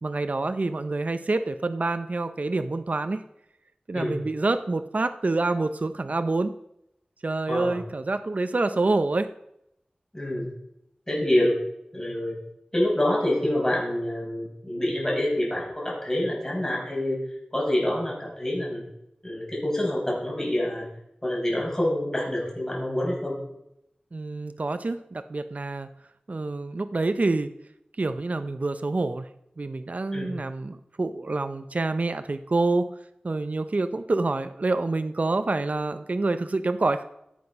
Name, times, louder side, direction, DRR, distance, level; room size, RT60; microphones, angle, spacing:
voice 1, 0.0-3.2 3.9-6.5 7.2-9.3 11.1-11.3 24.1-25.9 26.3-27.5 28.0-29.3 29.6-32.9 33.2-37.0, right 3 dB, 55° right, 10 dB, 0.6 m, -27 dB
voice 2, 10.1-10.5 11.1-11.5 11.9-12.3 12.7-17.2 17.5-18.8 19.2-20.9 21.2-23.4 30.1-30.3, left 1 dB, 15° left, -3 dB, 5.4 m, -26 dB
15.5 x 8.0 x 5.3 m, 0.82 s
wide cardioid pair, 65°, 3 cm